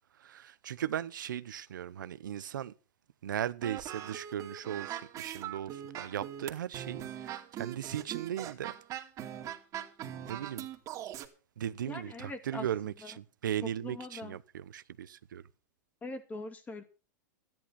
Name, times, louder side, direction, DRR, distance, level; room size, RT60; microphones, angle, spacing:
voice 1, 0.2-2.7 3.2-8.7 10.3-10.7 11.6-15.4, right 10 dB, 90° right, 0.8 m, -37 dB
sound 1, 3.6-11.3, right 11 dB, 35° right, 2.4 m, -41 dB
voice 2, 11.9-12.7 13.0-13.2 13.6-14.4 16.0-16.8, left 2 dB, 15° left, 2.3 m, -42 dB
13.5 x 10.5 x 5.9 m
hypercardioid pair, 135°, 10 cm